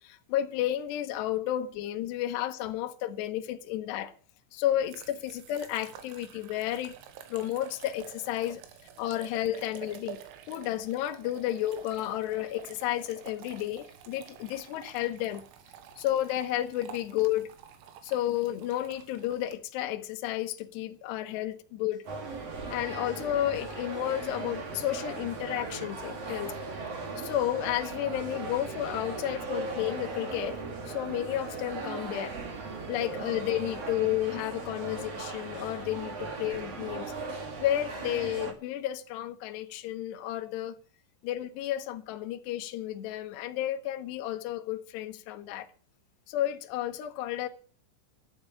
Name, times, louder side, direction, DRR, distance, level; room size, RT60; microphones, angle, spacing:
voice 1, 0.0-4.1 4.5-6.9 7.3-8.6 9.0-10.2 10.5-15.4 16.0-17.5 18.0-22.0 22.7-26.6 27.2-30.6 30.9-32.4 32.9-37.1 37.6-40.8 41.2-45.7 46.3-47.5, left 13 dB, 70° left, 2.8 m, -32 dB
sound 1, 4.6-19.6, right 9 dB, 85° right, 4.1 m, -49 dB
sound 2, 21.8-33.8, right 8 dB, 65° right, 3.3 m, -53 dB
sound 3, 22.1-38.5, right 3 dB, 40° right, 2.5 m, -38 dB
12.5 x 8.6 x 8.7 m
omnidirectional pair, 5.9 m